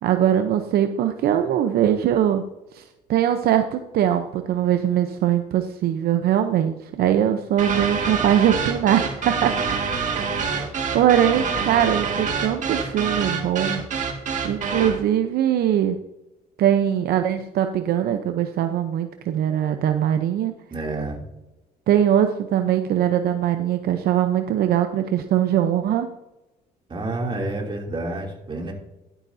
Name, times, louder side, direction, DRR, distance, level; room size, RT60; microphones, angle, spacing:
voice 1, 0.0-2.4 2.7-2.8 3.1-10.2 10.9-13.8 14.4-16.0 16.6-20.6 21.9-26.1, right 10 dB, 65° right, 7 dB, 0.7 m, -21 dB
sound 1, 7.6-15.0, right 5 dB, 45° right, 2.0 m, -26 dB
voice 2, 20.7-21.2 26.9-28.7, right 2 dB, 30° right, 0 dB, 2.9 m, -29 dB
12.0 x 9.8 x 2.7 m, 0.93 s
cardioid pair, 110°, 17 cm